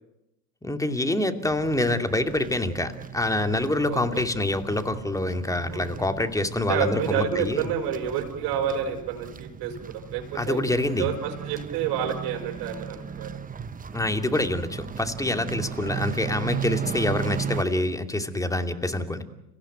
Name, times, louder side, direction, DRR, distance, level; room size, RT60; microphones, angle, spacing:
voice 1, 0.6-7.7 10.3-11.1 13.9-19.2, left 2 dB, 5° left, 6 dB, 2.7 m, -26 dB
sound 1, 1.5-17.6, right 7 dB, 20° right, 1.0 m, -36 dB
voice 2, 3.9-4.3 5.7-5.9 6.7-10.6 11.0-13.3 15.6-15.7, right 8 dB, 55° right, 2 dB, 5.7 m, -29 dB
30.0 x 16.5 x 9.3 m, 0.90 s
hypercardioid pair, 85°, 47 cm